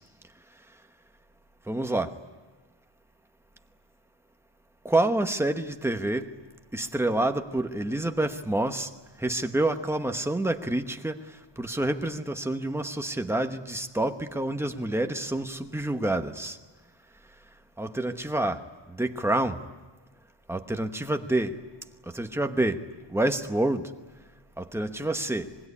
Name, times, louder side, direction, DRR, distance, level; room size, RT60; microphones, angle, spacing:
voice 1, 1.7-2.1 4.8-6.3 6.7-8.9 9.2-11.2 11.6-16.6 17.8-19.6 20.5-21.6 22.1-23.9 24.6-25.5, right 1 dB, 5° right, 1.0 m, -28 dB
25.5 x 20.0 x 9.8 m
wide cardioid pair, 180°, 46 cm